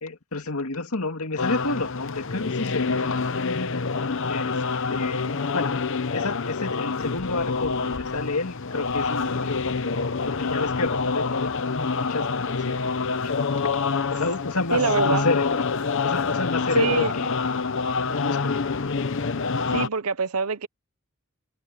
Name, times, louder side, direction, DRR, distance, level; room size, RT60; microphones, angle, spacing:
voice 1, 0.0-3.2 4.3-4.6 4.9-5.7 6.1-9.9 10.3-12.8 13.2-13.6 14.1-15.7 16.0-17.4 18.1-18.6, left 3 dB, 80° left, 2.3 m, -30 dB
sound 1, 1.4-19.9, left 4 dB, 60° left, 0.9 m, -27 dB
voice 2, 14.7-15.3 16.8-17.1 19.7-20.7, right 4 dB, 85° right, 0.9 m, -24 dB
head